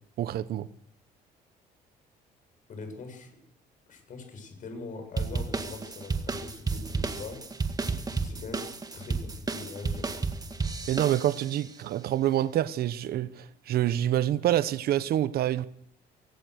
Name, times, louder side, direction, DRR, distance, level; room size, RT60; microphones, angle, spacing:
voice 1, 0.2-0.7 10.9-15.7, right 12 dB, 65° right, 1.1 m, -27 dB
voice 2, 2.7-3.3 3.9-7.4 8.2-10.1, left 4 dB, 50° left, 8.0 m, -42 dB
sound 1, 5.2-11.7, right 4 dB, 20° right, 2.0 m, -32 dB
24.0 x 19.0 x 6.5 m
cardioid pair, 110°, 17 cm